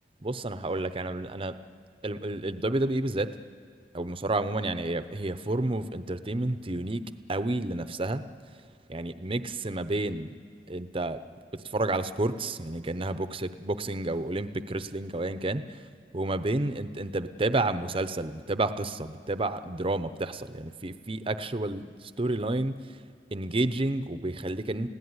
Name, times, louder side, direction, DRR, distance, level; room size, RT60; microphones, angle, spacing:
voice 1, 0.2-1.6 2.0-3.3 3.9-7.0 7.3-8.2 8.9-10.3 10.7-11.2 11.5-15.8 16.1-22.7 23.3-24.9, right 2 dB, 30° right, 11 dB, 0.8 m, -30 dB
30.0 x 17.0 x 9.7 m, 2.1 s
head